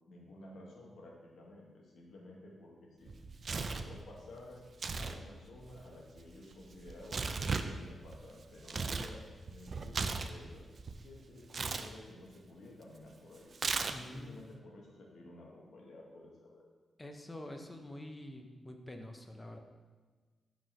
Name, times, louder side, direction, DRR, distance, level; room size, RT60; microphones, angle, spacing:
voice 1, 0.1-3.1 3.5-4.6 5.0-9.2 9.5-10.6 11.0-13.5 13.8-16.6, left 1 dB, 80° left, -2 dB, 1.2 m, -53 dB
Tearing, 3.1-3.9 4.7-5.2 5.4-9.1 9.5-11.0 11.5-11.9 13.5-14.2, right 4 dB, 50° right, 0.4 m, -37 dB
voice 2, 13.9-14.4 17.0-19.6, left 1 dB, 15° left, 4 dB, 0.6 m, -46 dB
5.0 x 3.9 x 5.3 m, 1.4 s
cardioid pair, 110°, 0 cm